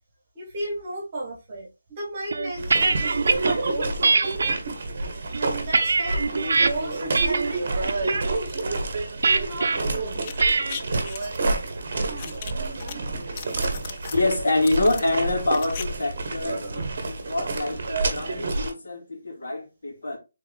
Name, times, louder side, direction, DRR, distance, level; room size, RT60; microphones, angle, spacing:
voice 1, 0.4-4.6 5.4-6.2 6.5-8.8 9.2-10.2, right 1 dB, 25° right, 1.6 m, -35 dB
sound 1, 2.3-3.5 4.0-4.6 5.2-6.7 7.1-7.5 7.9-8.3 9.2-9.8 10.4-10.8, right 4 dB, 60° right, 0.5 m, -22 dB
sound 2, 2.6-18.7, right 3 dB, 40° right, 1.0 m, -29 dB
sound 3, 10.2-11.4 12.2-12.9 13.3-14.2 14.6-15.8 16.1-16.2, left 7 dB, 25° left, 0.3 m, -38 dB
voice 2, 14.1-20.2, left 2 dB, 65° left, 2.0 m, -26 dB
4.4 x 3.6 x 3.1 m
hypercardioid pair, 175°, 0 cm